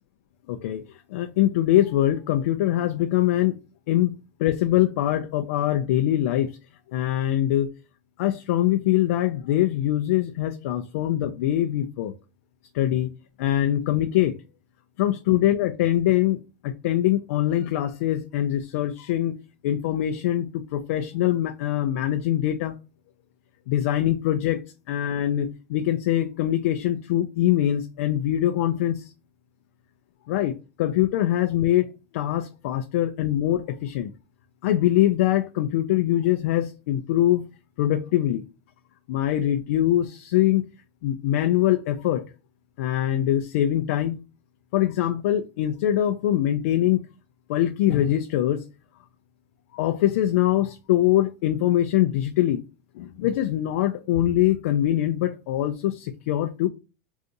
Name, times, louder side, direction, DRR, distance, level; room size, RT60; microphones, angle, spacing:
voice 1, 0.5-0.8 1.1-3.6 3.9-4.1 4.4-6.5 6.9-7.7 8.2-12.1 12.7-13.1 13.4-14.3 15.0-19.3 19.6-22.8 23.7-24.6 24.9-29.0 30.3-30.5 30.8-34.1 34.6-37.4 37.8-38.4 39.1-40.6 41.0-42.2 42.8-44.2 44.7-47.0 47.5-48.6 49.7-52.6 53.0-56.7, left 13 dB, 70° left, 0.3 m, -23 dB
2.6 x 2.4 x 3.8 m
supercardioid pair, 155°, 8 cm